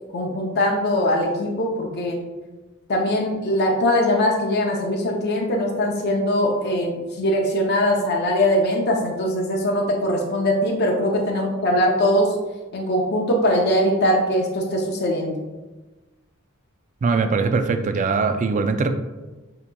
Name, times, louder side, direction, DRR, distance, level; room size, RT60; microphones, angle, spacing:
voice 1, 0.1-2.2 2.9-12.4 12.7-15.4, left 1 dB, 50° left, 0 dB, 0.6 m, -21 dB
voice 2, 17.0-18.9, right 4 dB, 35° right, 8 dB, 0.3 m, -21 dB
6.9 x 2.9 x 2.2 m, 1.2 s
head